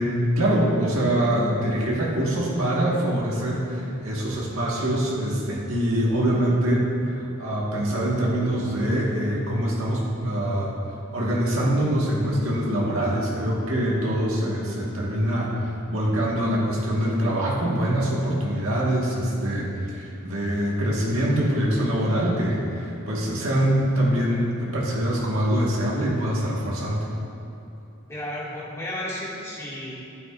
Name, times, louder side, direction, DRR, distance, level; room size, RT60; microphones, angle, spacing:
voice 1, 0.0-10.7 11.1-19.7 19.9-27.0, right 1 dB, 75° right, -4 dB, 1.6 m, -24 dB
voice 2, 28.1-29.9, left 1 dB, 15° left, -6 dB, 1.9 m, -33 dB
14.5 x 8.7 x 2.5 m, 2.9 s
head